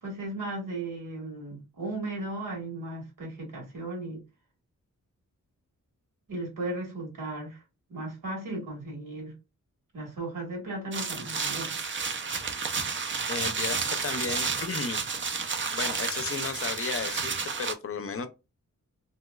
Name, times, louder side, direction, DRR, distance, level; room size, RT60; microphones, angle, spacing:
voice 1, 0.0-4.2 6.3-7.6 7.9-9.3 9.9-11.9, right 2 dB, 80° right, 1.7 m, -36 dB
sound 1, 10.9-17.7, right 5 dB, 40° right, 0.5 m, -31 dB
voice 2, 13.3-15.0 15.7-18.3, left 5 dB, 45° left, 0.5 m, -34 dB
2.9 x 2.9 x 2.3 m
wide cardioid pair, 95°, 32 cm